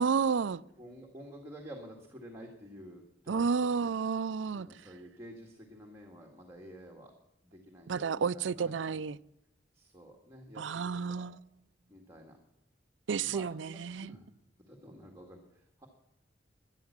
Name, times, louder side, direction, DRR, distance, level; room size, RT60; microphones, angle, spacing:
voice 1, 0.0-0.6 3.3-4.7 7.9-9.2 10.6-11.4 13.1-14.2, right 5 dB, 85° right, 0.5 m, -31 dB
voice 2, 0.8-3.9 4.5-7.1 7.5-9.0 9.7-11.3 11.9-12.4 13.2-14.3 14.7-15.9, equal, 15° right, 1.9 m, -50 dB
13.0 x 11.0 x 7.3 m
head